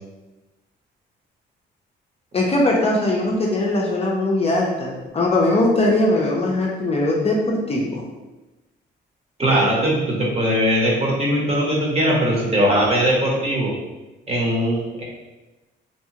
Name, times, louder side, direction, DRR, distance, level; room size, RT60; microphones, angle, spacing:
voice 1, 2.3-8.0, left 2 dB, 30° left, -2 dB, 0.5 m, -20 dB
voice 2, 9.4-13.7 14.3-15.0, equal, 30° right, -4 dB, 0.9 m, -20 dB
2.8 x 2.2 x 2.8 m, 1.1 s
cardioid pair, 90°, 20 cm